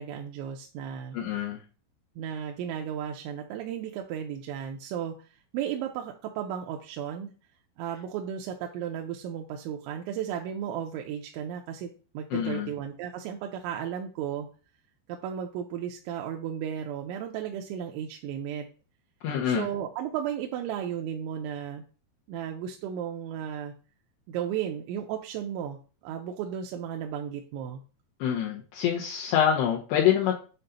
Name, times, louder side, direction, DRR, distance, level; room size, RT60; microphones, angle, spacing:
voice 1, 0.0-1.2 2.2-5.1 5.5-7.3 7.8-11.9 12.1-14.5 15.2-18.7 19.5-21.8 22.3-23.7 24.3-27.8, right 9 dB, 90° right, 2 dB, 3.0 m, -34 dB
voice 2, 1.1-1.6 12.3-12.7 19.2-19.7 28.2-30.3, left 9 dB, 75° left, -4 dB, 2.7 m, -26 dB
7.7 x 2.6 x 5.5 m, 0.37 s
omnidirectional pair, 5.3 m